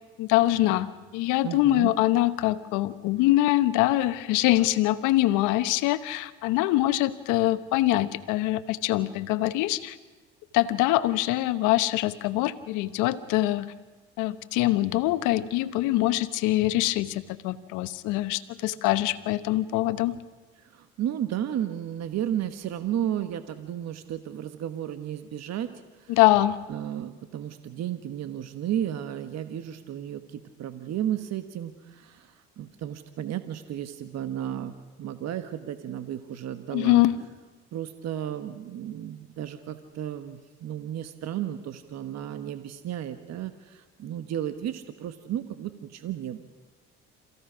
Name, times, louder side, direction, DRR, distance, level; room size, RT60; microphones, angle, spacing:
voice 1, 0.2-10.0 10.5-13.7 14.2-20.2 26.1-26.6 36.7-37.2, left 16 dB, 80° left, 13 dB, 1.0 m, -24 dB
voice 2, 1.4-1.9 20.6-25.7 26.0-26.2 26.7-37.0 37.7-46.4, right 10 dB, 60° right, 10 dB, 1.2 m, -33 dB
27.5 x 16.0 x 6.2 m, 1.3 s
supercardioid pair, 70°, 31 cm